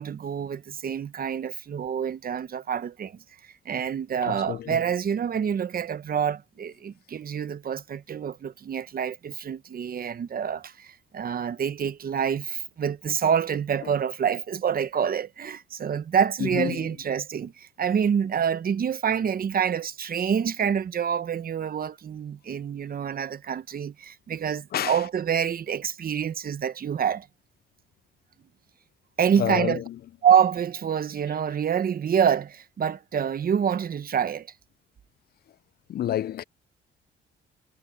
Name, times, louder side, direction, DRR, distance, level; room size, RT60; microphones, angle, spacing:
voice 1, 0.0-3.2 3.6-27.3 29.2-29.8 30.2-34.5, right 8 dB, 45° right, 1.1 m, -27 dB
voice 2, 4.2-4.8 13.8-13.9 16.4-16.9 24.7-25.1 29.4-30.0 35.9-36.4, left 11 dB, 50° left, 0.4 m, -29 dB
cardioid pair, 90°, 20 cm